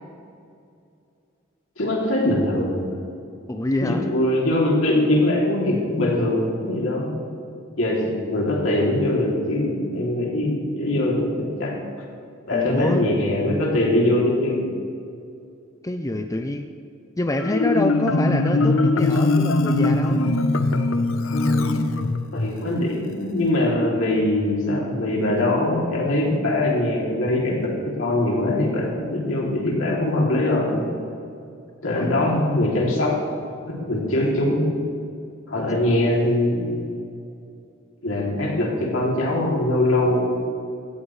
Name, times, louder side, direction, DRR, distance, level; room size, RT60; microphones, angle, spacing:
voice 1, 1.8-2.9 3.8-7.1 7.8-11.8 12.5-14.7 21.3-21.9 22.3-30.9 31.8-33.2 33.7-34.7 35.5-36.8 38.0-40.4, left 1 dB, 75° left, -2 dB, 3.0 m, -22 dB
voice 2, 3.5-4.1 12.5-13.1 15.8-16.7 17.2-20.3 31.9-32.3, left 1 dB, 15° left, 6 dB, 0.6 m, -26 dB
Marimba xylophone, 17.4-22.5, left 2 dB, 90° left, 0.8 m, -21 dB
16.5 x 14.0 x 3.3 m, 2.5 s
head